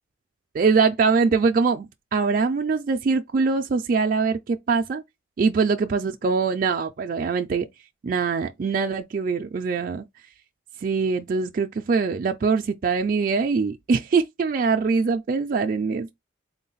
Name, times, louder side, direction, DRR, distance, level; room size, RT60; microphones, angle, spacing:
voice 1, 0.5-5.0 5.4-7.7 8.0-10.0 10.8-16.1, right 4 dB, 40° right, 0.3 m, -23 dB
3.8 x 2.1 x 3.9 m
head